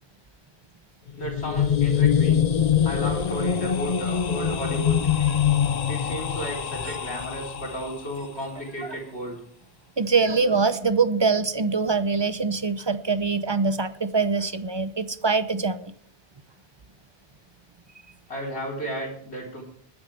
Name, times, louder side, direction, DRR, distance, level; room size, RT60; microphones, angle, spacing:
sound 1, 1.1-8.1, left 9 dB, 45° left, 0.6 m, -24 dB
voice 1, 1.2-2.5 2.8-5.1 5.9-9.4 18.3-19.6, equal, 75° left, -1 dB, 4.1 m, -33 dB
voice 2, 10.0-15.9, right 4 dB, 30° right, 12 dB, 0.6 m, -24 dB
21.0 x 9.6 x 3.4 m, 0.64 s
omnidirectional pair, 1.1 m